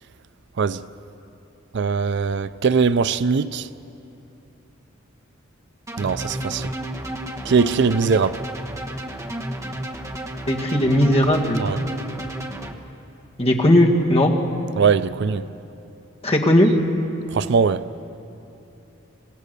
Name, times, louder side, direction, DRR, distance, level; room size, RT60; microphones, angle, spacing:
voice 1, 1.7-3.7 6.0-6.7 7.4-8.4 11.6-11.8 14.8-15.4 17.3-17.8, right 5 dB, 60° right, 0.5 m, -20 dB
sound 1, 5.9-12.7, right 1 dB, 15° right, 1.1 m, -32 dB
voice 2, 10.5-11.7 13.4-14.3 16.2-16.7, left 1 dB, 30° left, 1.9 m, -17 dB
25.0 x 17.5 x 6.8 m
head